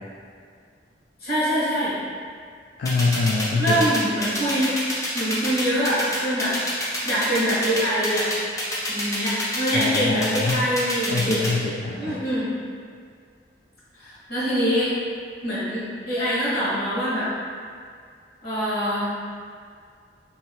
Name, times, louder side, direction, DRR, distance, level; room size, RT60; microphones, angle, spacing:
voice 1, 1.2-2.0 3.6-6.6 7.0-8.3 8.9-11.4 12.0-12.5 13.9-14.9 15.4-17.3 18.4-19.1, equal, 60° left, -10 dB, 1.2 m, -24 dB
voice 2, 2.8-3.8 9.7-10.6 11.1-12.2, left 3 dB, 75° left, -4 dB, 0.3 m, -24 dB
sound 1, 2.9-11.5, left 1 dB, 20° left, 0.5 m, -27 dB
2.8 x 2.7 x 2.9 m, 2.1 s
head